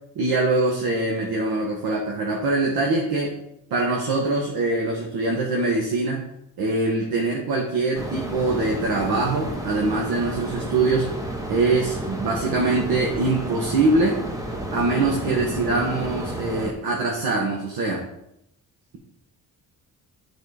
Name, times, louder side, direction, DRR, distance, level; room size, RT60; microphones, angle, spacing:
voice 1, 0.1-3.4 3.7-6.2 6.6-11.1 11.5-14.2 14.7-18.0, right 3 dB, 90° right, -1 dB, 1.4 m, -23 dB
sound 1, 7.9-16.7, right 1 dB, 10° right, 1.4 m, -31 dB
9.6 x 4.3 x 4.9 m, 0.80 s
cardioid pair, 90°, 36 cm